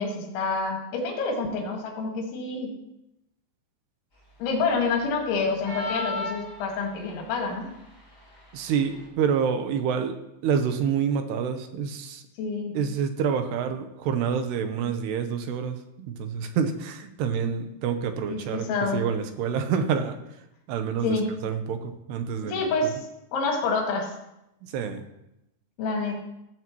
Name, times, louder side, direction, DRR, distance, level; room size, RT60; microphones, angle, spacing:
voice 1, 0.0-2.7 4.4-7.7 12.4-12.7 18.3-19.0 21.0-21.3 22.4-23.0 23.3-24.1 25.8-26.2, left 4 dB, 85° left, 0 dB, 4.4 m, -27 dB
sound 1, 5.6-7.1, left 2 dB, 20° left, 2.5 m, -33 dB
voice 2, 8.5-10.2 10.4-12.2 12.7-18.7 18.9-20.2 20.7-22.6 24.7-25.1, right 7 dB, 75° right, 7 dB, 2.8 m, -27 dB
15.5 x 14.0 x 3.1 m, 0.88 s
omnidirectional pair, 5.2 m